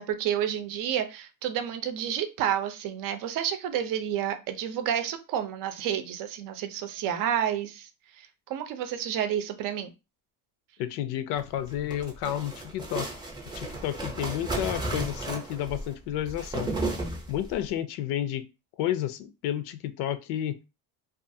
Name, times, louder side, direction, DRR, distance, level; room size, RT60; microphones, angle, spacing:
voice 1, 0.0-7.9 8.2-9.9, right 9 dB, 60° right, 8 dB, 0.6 m, -30 dB
voice 2, 10.8-13.1 13.5-16.7 17.3-18.4 18.8-20.6, left 11 dB, 80° left, 12 dB, 0.5 m, -31 dB
sound 1, 11.6-17.6, right 2 dB, 10° right, 0.6 m, -34 dB
2.4 x 2.4 x 2.6 m, 0.28 s
cardioid pair, 135°, 38 cm